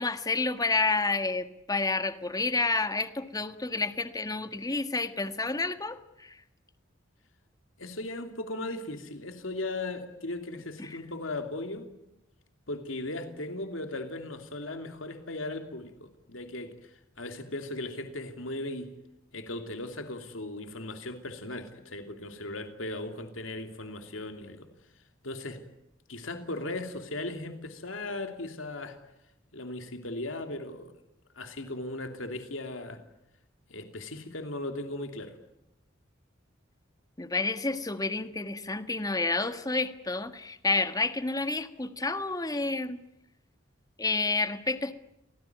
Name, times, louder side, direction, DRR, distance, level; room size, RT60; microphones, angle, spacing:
voice 1, 0.0-6.4 10.8-11.0 37.2-43.0 44.0-44.9, left 3 dB, 20° left, 9 dB, 1.6 m, -29 dB
voice 2, 7.8-11.9 12.7-18.9 19.3-24.7 25.2-25.6 26.1-29.0 29.5-30.9 31.3-33.0 33.7-35.3, left 2 dB, 80° left, 6 dB, 2.9 m, -37 dB
27.0 x 18.5 x 9.5 m, 0.86 s
head